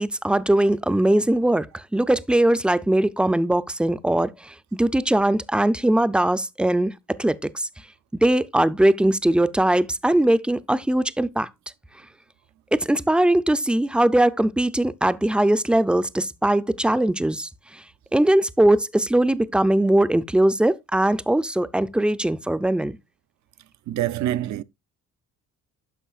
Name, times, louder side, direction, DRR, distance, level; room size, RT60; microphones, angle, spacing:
voice 1, 0.0-6.9 7.2-7.7 8.1-11.5 12.7-17.8 18.1-23.0, right 1 dB, 5° right, 0.4 m, -20 dB
voice 2, 23.9-24.6, right 13 dB, 70° right, 0.5 m, -25 dB
10.0 x 6.2 x 2.4 m
cardioid pair, 90°, 30 cm